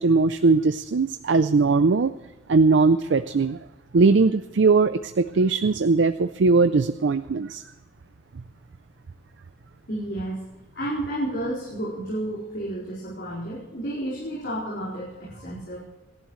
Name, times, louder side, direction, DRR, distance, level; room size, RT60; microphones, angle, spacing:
voice 1, 0.0-2.1 2.5-3.6 3.9-7.6, right 4 dB, 70° right, 12 dB, 0.5 m, -20 dB
voice 2, 9.9-10.4 10.7-15.8, right 1 dB, 55° left, -8 dB, 4.7 m, -31 dB
28.0 x 11.5 x 3.2 m, 1.2 s
head